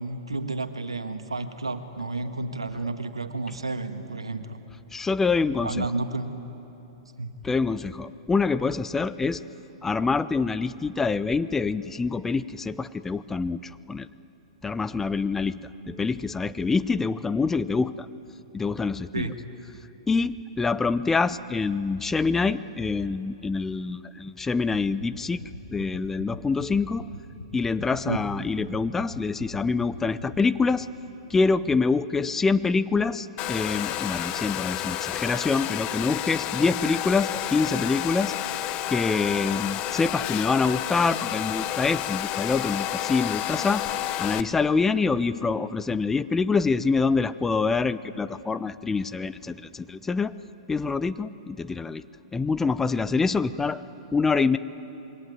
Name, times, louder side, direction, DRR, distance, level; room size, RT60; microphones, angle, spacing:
voice 1, 0.0-4.6 5.6-6.3 7.2-7.3 19.1-19.4 28.0-28.2, right 3 dB, 80° right, 8 dB, 1.7 m, -31 dB
voice 2, 4.9-5.9 7.4-9.4 9.8-14.1 14.6-15.6 15.9-18.1 18.5-19.3 20.1-25.4 25.7-27.1 27.5-30.9 31.3-38.4 38.9-43.8 44.2-50.4 50.7-52.0 52.3-53.8 54.1-54.6, left 4 dB, 10° left, 14 dB, 0.7 m, -25 dB
sound 1, 24.7-30.6, left 3 dB, 80° left, 2.4 m, -39 dB
Domestic sounds home sounds, 33.4-44.4, left 13 dB, 35° left, 1.0 m, -30 dB
27.0 x 23.0 x 9.5 m, 2.9 s
figure-of-eight pair, 105°, 3 cm